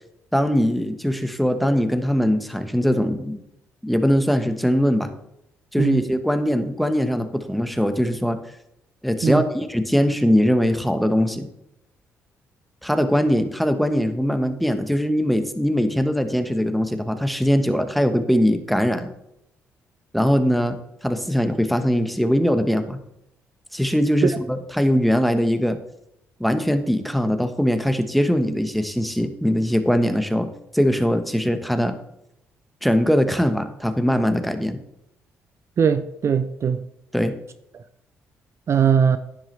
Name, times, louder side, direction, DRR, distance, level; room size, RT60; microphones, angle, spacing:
voice 1, 0.3-3.4 3.8-5.1 5.7-8.4 9.0-11.5 12.8-19.1 20.1-20.8 21.0-23.0 23.7-25.8 26.4-30.5 30.7-31.9 32.8-34.8 37.1-37.3, equal, ahead, 1.2 m, -21 dB
voice 2, 35.8-36.8 38.7-39.2, right 7 dB, 50° right, 0.5 m, -19 dB
10.0 x 9.5 x 3.3 m
supercardioid pair, 50°, 6 cm